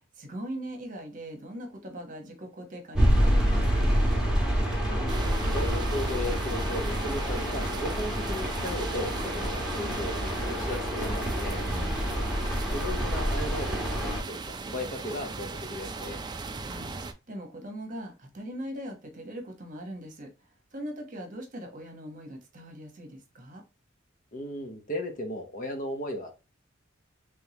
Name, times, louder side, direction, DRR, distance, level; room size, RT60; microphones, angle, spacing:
voice 1, 0.1-4.1 11.7-12.2 16.4-16.9 17.3-23.6, equal, 40° right, 4 dB, 1.1 m, -41 dB
sound 1, 2.9-14.2, equal, 5° right, 1.5 m, -27 dB
voice 2, 4.9-11.6 12.7-16.2 24.3-26.3, left 1 dB, 40° left, 5 dB, 0.8 m, -36 dB
sound 2, 5.1-17.1, right 4 dB, 20° right, 0.4 m, -39 dB
3.6 x 3.4 x 2.9 m, 0.28 s
head